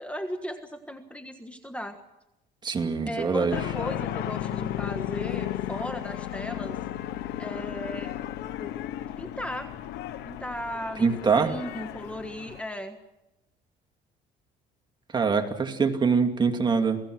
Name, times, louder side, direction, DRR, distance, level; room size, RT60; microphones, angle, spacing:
voice 1, 0.0-2.0 3.1-6.8 7.4-8.2 8.6-8.7 9.2-9.7 10.2-13.0, equal, 5° left, 7 dB, 1.5 m, -36 dB
voice 2, 2.6-3.6 11.0-11.5 15.1-17.0, right 5 dB, 25° right, 5 dB, 2.4 m, -24 dB
sound 1, 3.5-12.6, left 12 dB, 85° left, 1.3 m, -34 dB
28.5 x 18.0 x 6.3 m, 0.92 s
cardioid pair, 110°, 17 cm